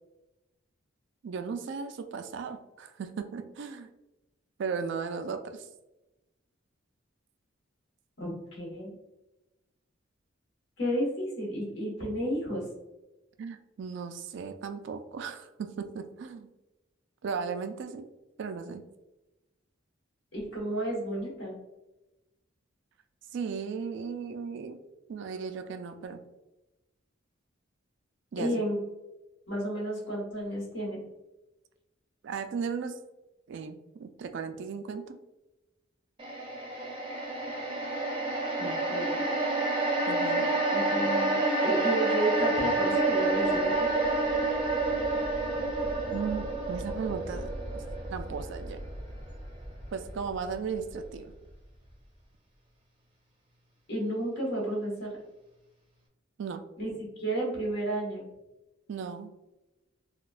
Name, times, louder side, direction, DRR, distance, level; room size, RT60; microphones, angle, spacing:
voice 1, 1.2-3.9 4.6-5.7 13.4-16.5 17.2-18.1 18.4-18.8 23.3-24.8 25.1-26.2 28.3-28.6 32.2-33.0 33.5-35.2 40.1-40.5 46.1-47.5 48.1-48.8 49.9-51.3 56.4-56.6 58.9-59.3, right 5 dB, 65° right, 8 dB, 0.3 m, -36 dB
voice 2, 8.2-8.9 10.8-12.6 20.3-21.5 28.4-28.8 29.5-31.0 38.6-39.2 40.7-43.9 53.9-55.1 56.8-56.9 57.2-58.3, right 1 dB, 60° left, -4 dB, 1.5 m, -32 dB
sound 1, 36.2-50.5 50.9-51.0, right 2 dB, 25° right, 0.6 m, -29 dB
3.9 x 2.2 x 2.4 m, 0.98 s
head